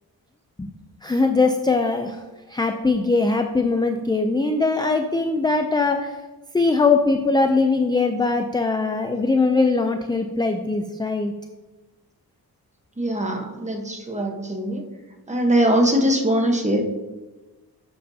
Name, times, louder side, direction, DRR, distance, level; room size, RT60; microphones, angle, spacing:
voice 1, 1.0-2.2 2.5-6.2 6.5-11.3, left 3 dB, 10° left, 5 dB, 0.4 m, -21 dB
voice 2, 13.0-14.9 15.3-16.8, right 1 dB, 20° right, 2 dB, 1.1 m, -21 dB
11.0 x 7.6 x 2.8 m, 1.2 s
wide cardioid pair, 140°, 38 cm